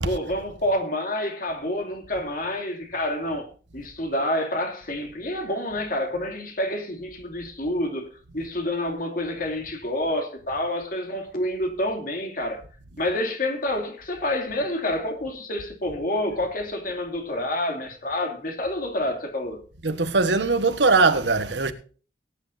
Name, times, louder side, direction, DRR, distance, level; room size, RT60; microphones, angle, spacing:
voice 1, 0.0-3.5 3.7-8.1 8.3-12.6 13.0-19.6, left 1 dB, 50° left, 2.6 m, -28 dB
voice 2, 19.8-21.7, right 3 dB, 80° right, 1.4 m, -21 dB
19.0 x 10.0 x 2.7 m
head